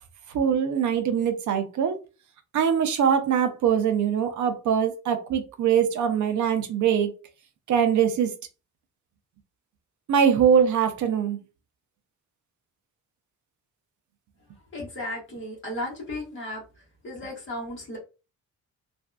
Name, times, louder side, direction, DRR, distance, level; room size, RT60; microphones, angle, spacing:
voice 1, 0.3-2.0 2.5-7.1 7.7-8.3 10.1-11.4, right 8 dB, 70° right, 0.6 m, -22 dB
voice 2, 14.7-16.6 17.0-18.0, left 1 dB, 40° left, 1.7 m, -34 dB
3.3 x 2.6 x 2.2 m
wide cardioid pair, 165°, 31 cm